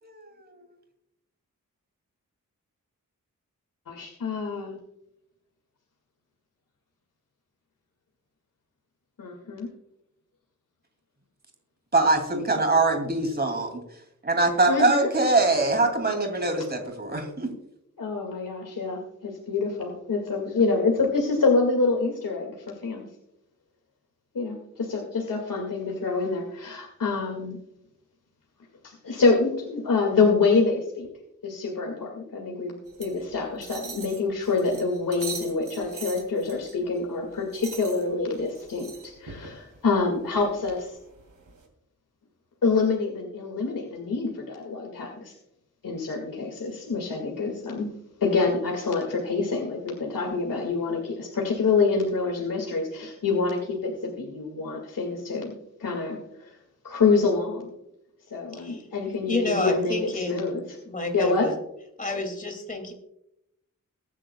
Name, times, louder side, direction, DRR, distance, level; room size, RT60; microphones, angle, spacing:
voice 1, 3.9-4.8 9.2-9.7 14.7-15.1 16.6-16.7 18.0-23.0 24.3-27.6 28.8-31.1 31.4-41.0 42.6-45.3 45.8-47.9 48.2-56.6 56.8-57.7 58.3-60.0 60.3-60.6 61.1-61.5, left 4 dB, 85° left, 0 dB, 2.1 m, -26 dB
voice 2, 11.9-13.8 14.2-17.5, right 2 dB, 30° right, 4 dB, 2.6 m, -23 dB
sound 1, 32.9-41.6, right 5 dB, 80° right, 2.9 m, -43 dB
voice 3, 58.5-58.9 59.3-60.4 60.9-61.5 62.0-62.9, left 2 dB, 25° left, 3 dB, 2.4 m, -29 dB
22.5 x 9.9 x 2.3 m, 0.80 s
wide cardioid pair, 145°, 32 cm